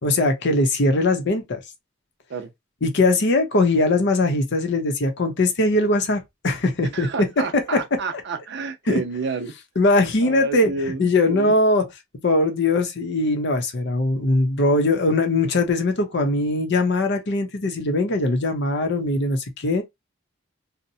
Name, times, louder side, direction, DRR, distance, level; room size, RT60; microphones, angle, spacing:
voice 1, 0.0-1.6 2.8-7.3 7.5-7.8 8.9-9.0 9.8-10.7 11.0-11.8 12.2-19.8, left 2 dB, 60° left, 0.7 m, -21 dB
voice 2, 6.9-9.5 10.2-11.5, right 4 dB, 60° right, 0.6 m, -30 dB
2.7 x 2.1 x 2.7 m
head